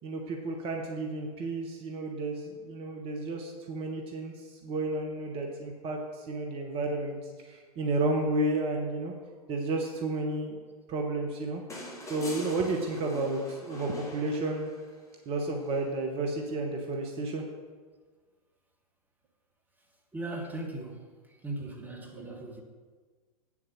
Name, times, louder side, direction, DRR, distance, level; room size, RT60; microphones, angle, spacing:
voice 1, 0.0-9.1 9.5-10.6 10.9-11.6 12.0-14.7 15.2-17.4 21.6-22.4, right 2 dB, 30° right, 2 dB, 1.2 m, -32 dB
sound 1, 11.7-15.0 16.5-16.6, left 1 dB, 15° left, 2.1 m, -43 dB
voice 2, 20.1-21.0 21.4-22.6, right 2 dB, 10° right, 1 dB, 1.6 m, -38 dB
8.4 x 7.2 x 6.5 m, 1.5 s
figure-of-eight pair, 100°, 19 cm